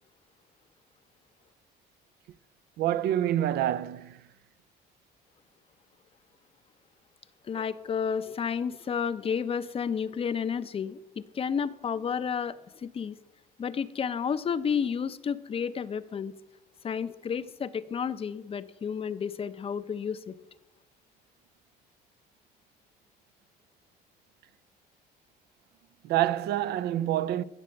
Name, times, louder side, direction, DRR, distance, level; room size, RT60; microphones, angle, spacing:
voice 1, 2.8-4.2 7.5-7.6 26.0-27.4, right 12 dB, 75° right, 0.5 m, -27 dB
voice 2, 7.5-13.2 13.6-16.3 16.8-20.3, left 7 dB, 35° left, 0.6 m, -31 dB
14.5 x 7.5 x 6.3 m
cardioid pair, 110°, 17 cm